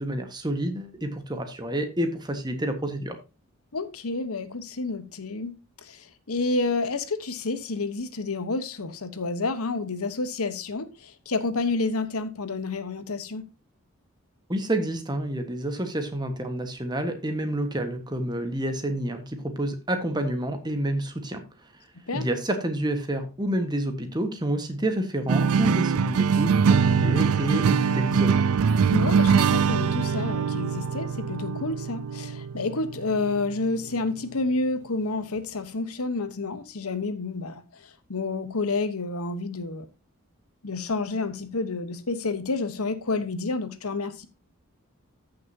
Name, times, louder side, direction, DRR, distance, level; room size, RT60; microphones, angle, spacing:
voice 1, 0.0-3.2 14.5-21.7 22.1-28.5, right 1 dB, 20° right, 1.4 m, -29 dB
voice 2, 3.7-13.4 22.1-22.3 28.9-39.9 40.6-44.3, left 3 dB, 85° left, 1.2 m, -29 dB
sound 1, 25.3-34.0, right 6 dB, 85° right, 0.4 m, -23 dB
14.0 x 6.5 x 2.8 m
head